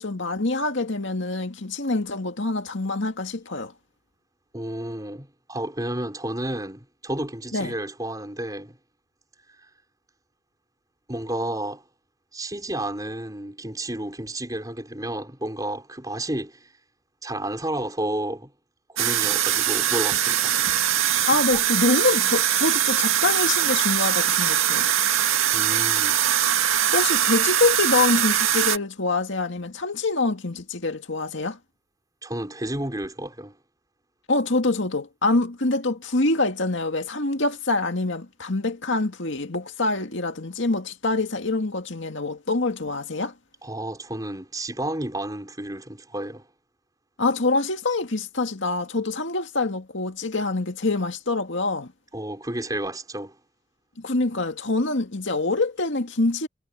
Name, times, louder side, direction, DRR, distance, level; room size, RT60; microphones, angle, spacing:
voice 1, 0.0-3.7 7.5-7.8 21.2-24.9 26.9-31.6 34.3-43.3 47.2-51.9 54.0-56.5, left 2 dB, 70° left, 2.1 m, -25 dB
voice 2, 4.5-8.8 11.1-11.8 12.3-16.7 17.2-18.5 18.9-20.9 25.1-26.2 32.2-33.6 43.6-46.4 52.1-53.3, right 1 dB, 20° right, 5.2 m, -31 dB
sound 1, 19.0-28.8, right 10 dB, 90° right, 2.0 m, -22 dB
head